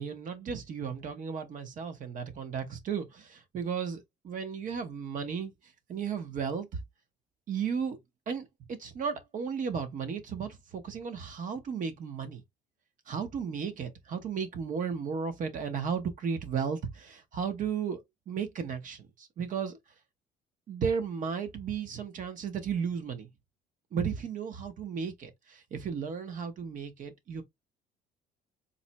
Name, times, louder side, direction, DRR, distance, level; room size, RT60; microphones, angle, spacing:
voice 1, 0.0-5.5 5.9-6.7 7.5-8.0 8.3-12.4 13.1-19.8 20.7-23.3 23.9-27.4, right 6 dB, 50° right, 0.8 m, -34 dB
4.0 x 2.1 x 2.8 m
cardioid pair, 110°, 17 cm